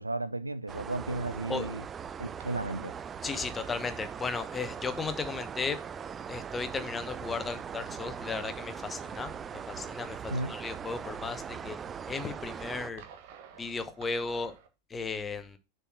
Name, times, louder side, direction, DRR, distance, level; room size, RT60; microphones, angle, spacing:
voice 1, 0.0-1.8 2.2-3.0 10.3-10.5, right 2 dB, 85° right, 0.4 m, -34 dB
sound 1, 0.7-12.9, right 7 dB, 20° right, 0.4 m, -40 dB
sound 2, 1.3-14.7, right 7 dB, 50° right, 1.3 m, -54 dB
voice 2, 3.2-5.8 6.3-11.8 12.1-13.0 13.6-14.5 14.9-15.6, left 4 dB, 15° left, 1.0 m, -35 dB
6.8 x 4.6 x 5.8 m
figure-of-eight pair, 90°, 0 cm